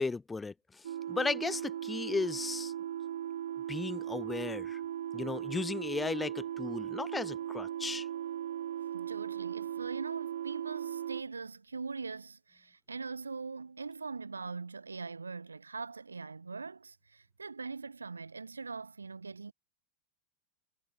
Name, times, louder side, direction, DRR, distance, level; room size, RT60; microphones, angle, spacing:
voice 1, 0.0-2.7 3.7-4.8 5.1-8.1, left 4 dB, 10° left, 0.6 m, -35 dB
sound 1, 0.8-11.2, right 10 dB, 60° right, 2.9 m, -38 dB
voice 2, 8.9-19.5, right 4 dB, 75° right, 1.1 m, -42 dB
figure-of-eight pair, 90°, 0 cm